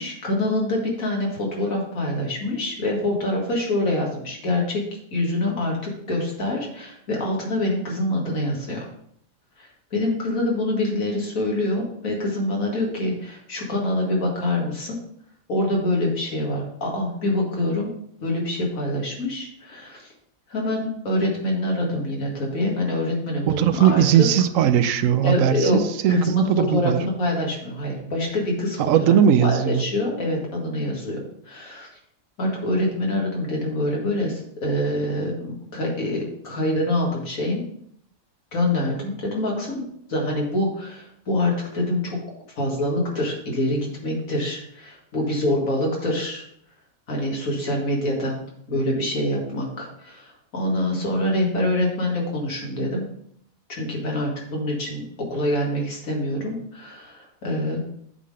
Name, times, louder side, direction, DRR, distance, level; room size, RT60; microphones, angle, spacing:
voice 1, 0.0-8.9 9.6-15.0 15.5-17.9 18.2-20.1 20.5-24.3 25.2-25.8 26.1-28.8 29.4-31.9 32.4-37.6 38.5-39.8 40.1-42.2 42.6-46.4 47.1-48.4 48.7-53.1 53.7-55.0 55.3-57.8, left 1 dB, 80° left, -2 dB, 2.3 m, -25 dB
voice 2, 23.5-27.0 28.9-29.8, right 9 dB, 75° right, 12 dB, 0.9 m, -19 dB
8.3 x 3.8 x 4.8 m, 0.68 s
omnidirectional pair, 1.4 m